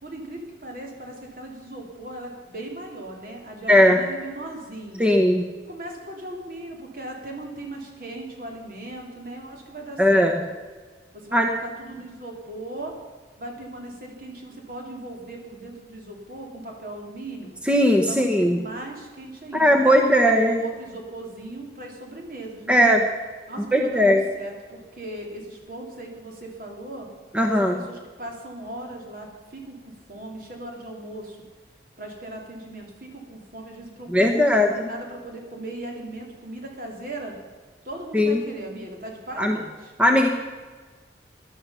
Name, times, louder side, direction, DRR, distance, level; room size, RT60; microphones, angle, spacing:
voice 1, 0.0-5.2 5.7-10.5 11.1-12.9 13.4-17.5 18.0-22.8 23.5-27.1 27.6-31.4 32.0-37.3 37.8-39.9, right 1 dB, 50° right, 1 dB, 3.2 m, -38 dB
voice 2, 3.7-4.0 5.0-5.5 10.0-10.4 11.3-11.5 17.6-18.6 19.5-20.6 22.7-23.0 23.7-24.3 27.3-27.8 34.1-34.9 38.1-38.4 39.4-39.6 40.0-40.3, equal, 5° right, 3 dB, 0.9 m, -18 dB
16.0 x 11.5 x 5.7 m, 1.4 s
head